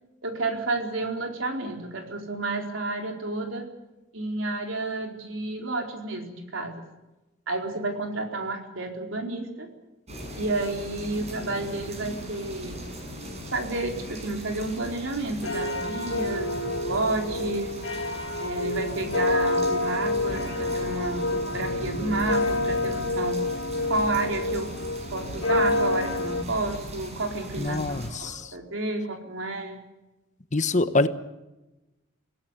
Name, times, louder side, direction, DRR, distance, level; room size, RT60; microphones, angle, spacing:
voice 1, 0.2-3.7 4.1-6.8 7.5-9.7 10.4-12.8 13.5-17.8 18.4-23.4 23.9-24.7 25.1-29.8, right 2 dB, 70° right, 3 dB, 4.4 m, -30 dB
sound 1, 10.1-28.1, equal, 35° right, 6.6 m, -39 dB
sound 2, 15.4-26.4, left 2 dB, 80° left, 3.6 m, -28 dB
voice 2, 27.6-28.5 30.5-31.1, left 2 dB, 35° left, 11 dB, 1.2 m, -25 dB
25.5 x 17.5 x 8.3 m, 1.0 s
head